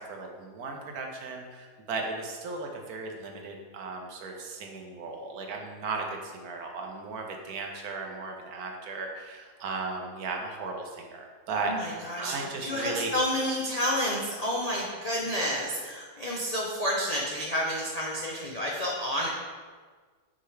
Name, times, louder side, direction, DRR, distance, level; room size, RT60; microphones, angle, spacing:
voice 1, 0.0-13.2, right 3 dB, 65° right, 2 dB, 1.2 m, -36 dB
voice 2, 11.7-12.3 12.6-19.3, equal, 70° left, -3 dB, 0.3 m, -30 dB
6.1 x 5.4 x 3.2 m, 1.5 s
omnidirectional pair, 1.8 m